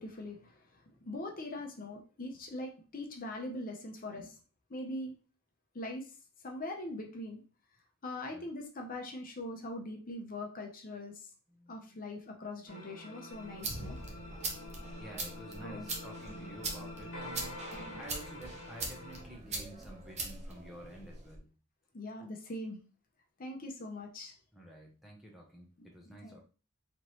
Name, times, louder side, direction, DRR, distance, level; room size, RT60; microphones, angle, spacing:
voice 1, 0.0-4.3 4.7-5.2 5.7-6.1 6.4-7.4 8.0-11.3 11.7-14.0 15.6-15.9 17.7-17.8 21.9-22.8 23.4-24.3 25.8-25.9 26.2-26.4, left 1 dB, 40° left, 2 dB, 0.7 m, -42 dB
voice 2, 11.5-12.0 15.0-17.6 18.0-21.5 24.5-26.4, right 1 dB, ahead, -2 dB, 0.7 m, -50 dB
sound 1, 12.7-19.2, left 1 dB, 65° left, 1.4 m, -46 dB
sound 2, 13.3-21.4, right 2 dB, 30° right, 0.8 m, -42 dB
4.2 x 3.1 x 3.0 m, 0.36 s
head